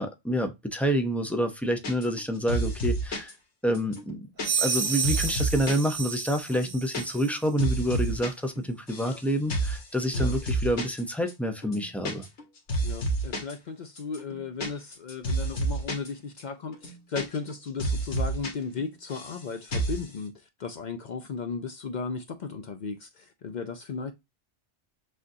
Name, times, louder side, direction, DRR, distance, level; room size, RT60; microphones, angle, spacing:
voice 1, 0.0-3.3 3.6-4.3 4.6-12.3, equal, ahead, 0.4 m, -28 dB
sound 1, 1.8-2.2 2.5-3.3 3.7-5.9 6.2-6.3 6.5-7.0 7.3-8.3 8.6-9.2 9.5-9.8 10.1-11.0 11.3-11.4 11.6-12.4 12.7-13.5 14.0-16.1 16.4-16.5 16.7-17.5 17.8-18.5 18.8-19.4 19.7-20.0, right 2 dB, 85° left, 1.6 m, -29 dB
sound 2, 4.4-7.4, right 6 dB, 55° right, 1.1 m, -31 dB
voice 2, 12.8-24.1, left 5 dB, 55° left, 0.5 m, -36 dB
6.3 x 2.5 x 2.6 m
omnidirectional pair, 1.1 m